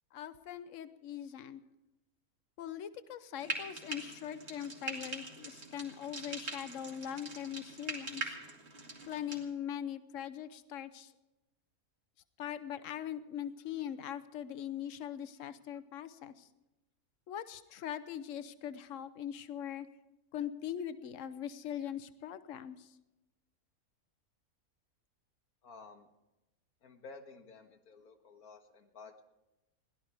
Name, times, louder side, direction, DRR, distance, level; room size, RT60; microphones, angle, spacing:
voice 1, 0.1-1.6 2.6-8.3 9.1-11.1 12.4-16.5 17.3-19.9 20.3-22.9, left 10 dB, 60° left, 13 dB, 1.2 m, -41 dB
Frying (food), 3.4-9.4, right 2 dB, 45° right, 2.7 m, -43 dB
voice 2, 25.6-26.1 26.8-29.2, left 4 dB, 80° left, 6 dB, 2.0 m, -53 dB
22.0 x 17.0 x 3.4 m, 0.96 s
omnidirectional pair, 1.5 m